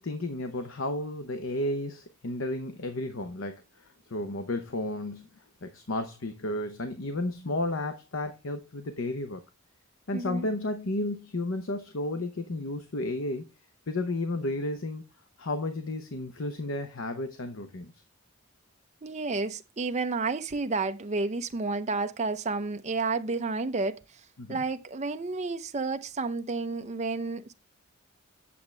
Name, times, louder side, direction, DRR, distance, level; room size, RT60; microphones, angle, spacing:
voice 1, 0.0-5.3 5.6-9.4 10.1-13.5 13.9-15.0 15.4-17.9 24.4-24.6, left 2 dB, 75° left, 0.8 m, -32 dB
voice 2, 10.1-10.5 19.0-24.0 24.5-27.5, right 3 dB, 35° right, 0.6 m, -31 dB
8.5 x 7.0 x 3.2 m
head